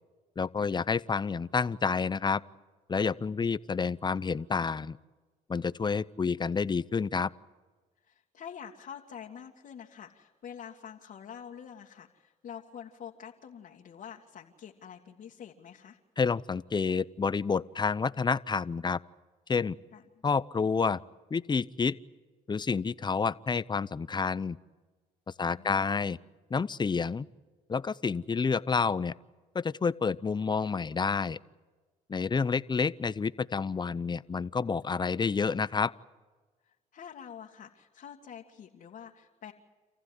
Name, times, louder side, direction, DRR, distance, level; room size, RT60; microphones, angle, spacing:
voice 1, 0.4-2.4 2.9-5.0 5.5-7.3 16.2-19.0 19.5-19.8 20.2-21.0 21.3-22.0 22.5-24.6 25.4-26.2 26.5-27.3 27.7-29.1 29.5-31.4 32.1-35.9, left 5 dB, 30° left, 17 dB, 0.7 m, -29 dB
voice 2, 8.0-16.0 19.9-20.0 25.4-26.0 36.7-39.5, left 8 dB, 65° left, -2 dB, 2.1 m, -47 dB
28.5 x 15.0 x 9.8 m, 1.3 s
supercardioid pair, 75°, 16 cm